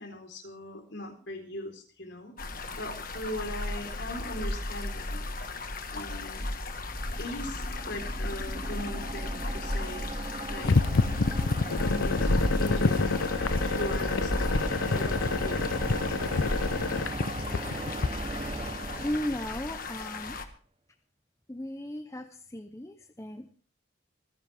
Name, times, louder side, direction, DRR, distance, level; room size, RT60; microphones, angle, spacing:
voice 1, 0.0-5.2 5.9-6.5 7.2-10.1 10.5-10.8 11.7-13.2 13.7-15.8, left 1 dB, 60° left, 3 dB, 4.2 m, -40 dB
sound 1, 2.4-20.5, left 1 dB, 45° left, 1.6 m, -34 dB
sound 2, 6.9-20.0, right 2 dB, 30° right, 0.6 m, -38 dB
sound 3, 10.6-18.1, left 4 dB, 80° left, 0.6 m, -28 dB
voice 2, 19.0-20.4 21.5-23.5, left 1 dB, 15° left, 7 dB, 0.8 m, -36 dB
27.0 x 10.5 x 3.5 m, 0.40 s
head